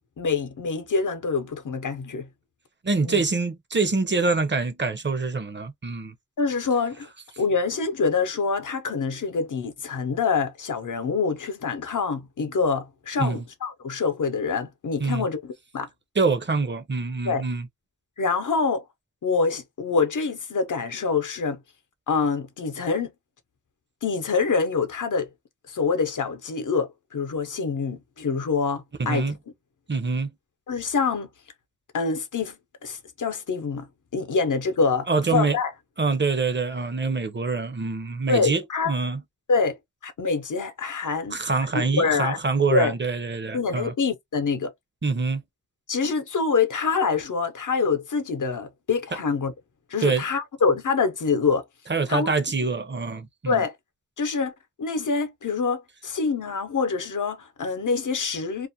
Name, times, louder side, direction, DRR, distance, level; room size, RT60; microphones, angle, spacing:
voice 1, 0.2-2.3 3.0-3.2 6.4-7.1 7.4-15.9 17.2-17.5 18.2-18.8 19.2-21.6 22.1-23.1 24.0-25.3 25.7-29.3 30.7-31.3 31.9-33.9 34.1-35.7 38.3-38.9 39.5-39.8 40.0-41.4 41.7-42.4 42.7-42.9 43.5-44.7 45.9-49.5 49.9-51.6 52.1-52.3 53.5-53.7 54.2-54.5 54.8-58.7, left 5 dB, 85° left, 0.6 m, -25 dB
voice 2, 2.8-6.1 13.2-13.4 15.0-15.2 16.2-17.6 29.0-29.4 29.9-30.3 35.1-35.6 36.0-39.2 41.3-43.9 45.0-45.4 50.0-50.2 51.9-53.6, right 4 dB, 40° right, 0.6 m, -25 dB
2.4 x 2.1 x 2.7 m
wide cardioid pair, 70°, 30 cm